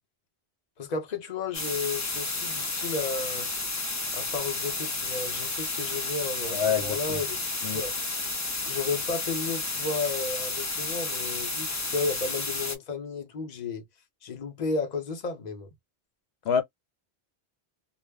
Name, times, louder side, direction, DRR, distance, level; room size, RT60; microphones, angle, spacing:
voice 1, 0.8-3.5 4.1-7.4 7.7-8.2 8.7-13.9 14.2-15.7, left 4 dB, 45° left, 0.8 m, -33 dB
sound 1, 1.5-12.8, left 3 dB, 30° left, 0.3 m, -32 dB
voice 2, 6.5-7.2 7.6-7.8 16.4-16.6, left 7 dB, 85° left, 0.9 m, -26 dB
2.2 x 2.0 x 3.3 m
omnidirectional pair, 1.1 m